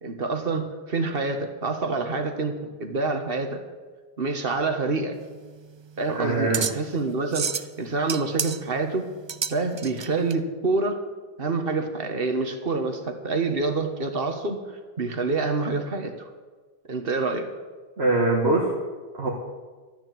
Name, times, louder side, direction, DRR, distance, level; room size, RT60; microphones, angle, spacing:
voice 1, 0.0-3.6 4.2-5.2 6.0-7.5 7.8-9.1 9.5-11.0 11.4-16.3 16.9-17.5, right 3 dB, 65° right, 6 dB, 1.7 m, -27 dB
sound 1, 5.2-10.3, right 6 dB, 35° right, 0.4 m, -32 dB
voice 2, 6.1-6.7 18.0-18.7 19.1-19.3, right 2 dB, 85° right, -3 dB, 2.2 m, -22 dB
13.0 x 10.0 x 7.8 m, 1.4 s
omnidirectional pair, 1.1 m